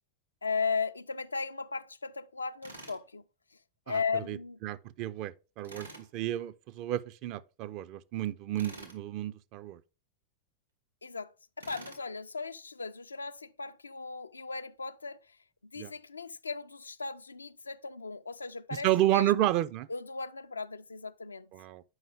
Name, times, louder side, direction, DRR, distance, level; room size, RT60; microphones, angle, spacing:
voice 1, 0.4-3.2 3.9-4.6 11.0-15.4 15.7-18.9 19.1-19.3 19.9-21.5, left 4 dB, 75° left, 0.3 m, -36 dB
Tools, 2.6-3.0 5.6-6.1 8.6-9.0 11.6-12.0, right 1 dB, 85° right, 1.6 m, -47 dB
voice 2, 4.6-9.8 15.8-15.9 18.8-19.9 21.5-21.8, right 13 dB, 40° right, 0.4 m, -31 dB
7.9 x 5.4 x 3.5 m
figure-of-eight pair, 90°, 0 cm